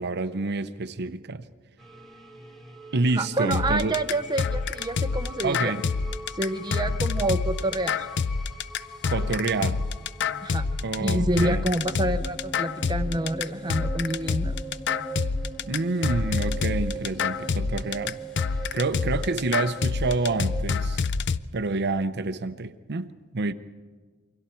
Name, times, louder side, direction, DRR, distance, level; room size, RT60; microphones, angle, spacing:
voice 1, 0.0-1.4 2.9-3.9 5.4-5.9 6.9-7.0 9.1-9.8 10.8-11.6 15.6-18.2 18.7-21.0 21.5-23.5, right 3 dB, 50° right, 0.8 m, -28 dB
sound 1, 1.8-20.6, right 3 dB, ahead, 1.7 m, -41 dB
voice 2, 3.1-5.7 6.3-8.1 10.4-10.7 11.0-14.6, right 1 dB, 20° right, 0.8 m, -28 dB
sound 2, 3.5-21.4, left 5 dB, 55° left, 0.5 m, -27 dB
28.5 x 24.0 x 4.5 m
head